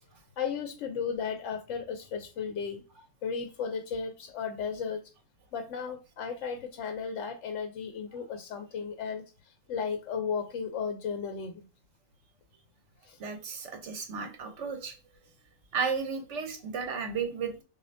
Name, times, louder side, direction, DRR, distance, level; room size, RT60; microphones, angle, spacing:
voice 1, 0.4-2.8 3.2-5.0 5.5-11.7 13.0-13.2, left 6 dB, 75° left, 7 dB, 0.9 m, -35 dB
voice 2, 13.2-15.0 15.7-17.6, right 5 dB, 70° right, 5 dB, 1.1 m, -33 dB
6.5 x 2.6 x 2.6 m, 0.32 s
omnidirectional pair, 1.3 m